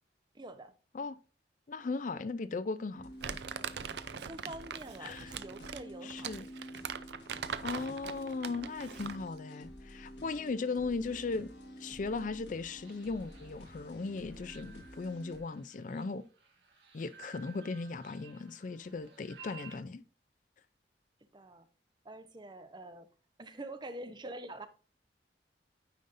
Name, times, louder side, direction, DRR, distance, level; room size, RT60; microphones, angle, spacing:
voice 1, 0.3-0.7 4.3-6.3 21.3-21.7 22.0-23.1 23.4-24.7, right 2 dB, 25° right, 0.6 m, -46 dB
voice 2, 1.7-3.1 5.0-5.3 6.0-6.5 7.6-11.5 11.8-16.3 16.9-20.0, left 4 dB, 45° left, 0.4 m, -37 dB
sound 1, 2.9-15.4, equal, 90° left, 1.5 m, -50 dB
Crumpling crinkling, 3.2-9.3, right 7 dB, 70° right, 0.5 m, -41 dB
sound 2, 12.8-19.8, right 4 dB, 85° right, 1.8 m, -56 dB
9.3 x 5.1 x 2.6 m
head